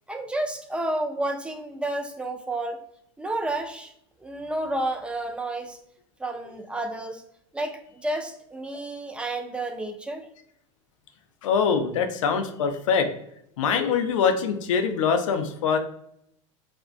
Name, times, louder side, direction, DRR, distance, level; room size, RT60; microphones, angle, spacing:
voice 1, 0.1-2.8 3.2-3.9 4.2-5.8 6.2-7.3 7.5-10.3, right 1 dB, 5° right, 4 dB, 0.3 m, -31 dB
voice 2, 11.4-13.1 13.6-15.8, left 6 dB, 85° left, 7 dB, 0.4 m, -23 dB
2.5 x 2.1 x 2.4 m, 0.73 s
hypercardioid pair, 100°, 16 cm